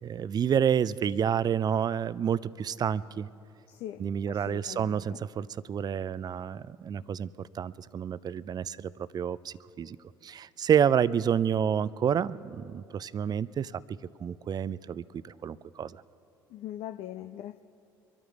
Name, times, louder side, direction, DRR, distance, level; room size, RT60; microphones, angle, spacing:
voice 1, 0.0-3.3 4.0-10.0 10.2-13.8 14.2-16.0, right 8 dB, 35° right, 18 dB, 0.5 m, -29 dB
voice 2, 3.7-5.2 16.5-17.6, left 12 dB, 55° left, 8 dB, 0.5 m, -41 dB
25.0 x 12.5 x 3.7 m, 2.9 s
figure-of-eight pair, 55°, 12 cm